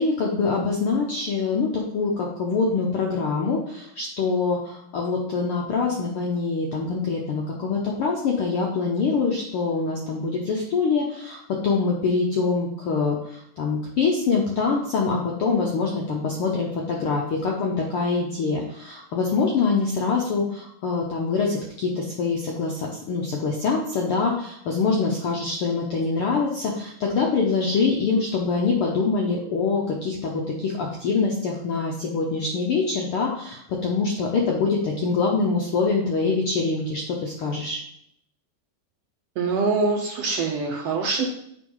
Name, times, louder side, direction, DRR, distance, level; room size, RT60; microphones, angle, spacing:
voice 1, 0.0-37.8, left 4 dB, 75° left, -1 dB, 1.3 m, -24 dB
voice 2, 39.4-41.2, right 4 dB, 70° right, 1 dB, 1.6 m, -24 dB
6.8 x 3.8 x 5.4 m, 0.72 s
omnidirectional pair, 3.5 m